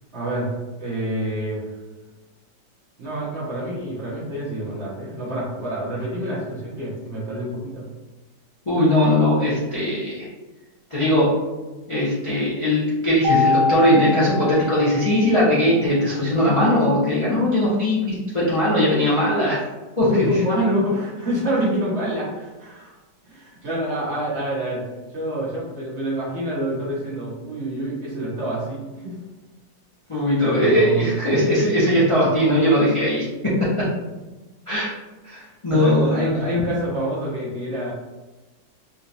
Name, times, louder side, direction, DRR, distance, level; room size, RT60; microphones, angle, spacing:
voice 1, 0.1-1.6 3.0-7.9 20.1-22.9 23.3-24.8 25.1-29.2 30.1-31.0 35.4-37.9, equal, 50° right, -7 dB, 1.0 m, -27 dB
voice 2, 8.7-10.3 10.9-11.3 11.9-19.6 20.0-20.1 30.1-33.2 34.7-34.9 35.2-36.4, left 1 dB, 60° left, -9 dB, 0.3 m, -19 dB
Mallet percussion, 13.2-15.5, left 4 dB, 75° right, 1.2 m, -23 dB
3.7 x 2.4 x 2.8 m, 1.2 s
omnidirectional pair, 1.9 m